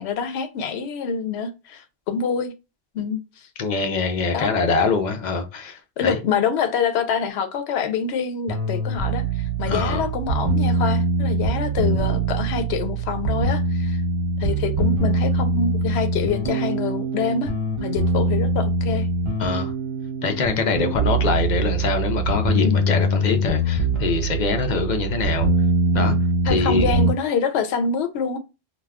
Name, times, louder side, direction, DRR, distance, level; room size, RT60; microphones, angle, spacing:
voice 1, 0.0-2.5 2.9-3.2 4.3-4.5 6.0-9.2 9.6-14.0 14.4-17.5 17.8-19.1 20.8-20.9 22.6-22.8 25.9-26.2 26.4-28.4, left 6 dB, 85° left, 0.8 m, -26 dB
voice 2, 3.6-6.2 9.7-10.1 19.4-19.7 20.2-25.5 25.9-26.1 26.5-26.9, left 4 dB, 55° left, 0.5 m, -24 dB
sound 1, 8.5-27.1, right 2 dB, 30° right, 0.8 m, -23 dB
2.3 x 2.3 x 3.4 m
omnidirectional pair, 1.1 m